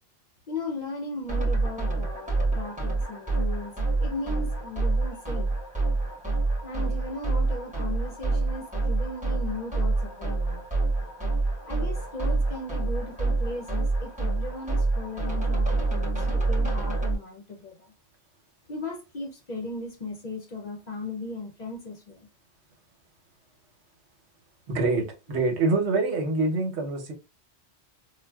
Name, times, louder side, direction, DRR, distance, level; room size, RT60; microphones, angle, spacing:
voice 1, 0.5-5.5 6.6-10.6 11.6-17.9 18.7-22.3, left 2 dB, 50° left, 0.6 m, -37 dB
sound 1, 1.3-17.1, right 3 dB, 10° right, 0.8 m, -27 dB
voice 2, 24.7-27.1, right 3 dB, 85° right, 1.1 m, -25 dB
4.1 x 2.1 x 2.2 m
omnidirectional pair, 1.1 m